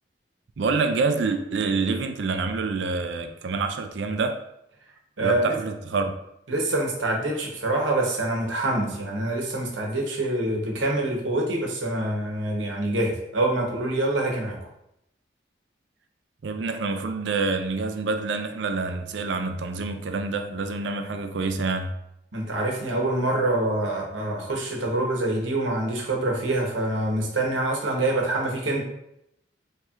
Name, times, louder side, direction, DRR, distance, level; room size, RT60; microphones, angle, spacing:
voice 1, 0.6-4.4 5.2-6.1 16.4-21.9, right 4 dB, 70° right, 0.4 m, -27 dB
voice 2, 5.2-5.5 6.5-14.6 22.3-28.8, right 2 dB, 85° right, 0.9 m, -25 dB
4.3 x 3.2 x 2.4 m
head